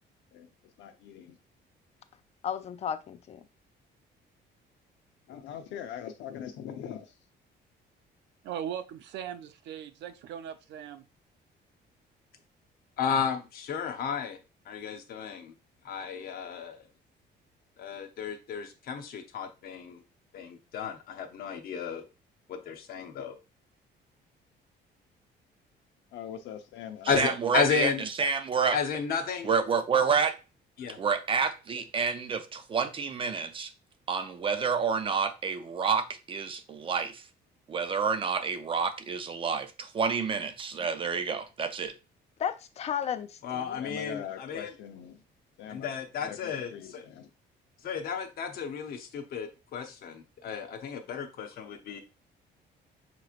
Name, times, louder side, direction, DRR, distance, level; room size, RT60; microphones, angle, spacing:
voice 1, 0.3-1.4 5.3-7.2 26.1-27.4 43.8-45.2 45.6-45.9 46.2-47.3, left 9 dB, 90° left, 0.8 m, -42 dB
voice 2, 2.4-3.4 42.4-43.8, left 8 dB, 35° left, 0.4 m, -34 dB
voice 3, 8.4-11.0, right 9 dB, 75° right, 0.6 m, -39 dB
voice 4, 13.0-14.4 14.7-15.5 15.8-16.7 17.8-20.0 20.3-22.0 22.5-23.3 27.1-28.0 28.7-29.5 30.8-31.0 43.4-44.7 45.7-47.0 47.8-52.0, left 6 dB, 55° left, 0.8 m, -33 dB
voice 5, 27.1-27.9 28.2-28.8 29.4-30.4 31.0-33.7 34.1-37.2 37.7-41.9, right 6 dB, 30° right, 0.5 m, -29 dB
6.1 x 3.0 x 2.4 m
cardioid pair, 165°, 18 cm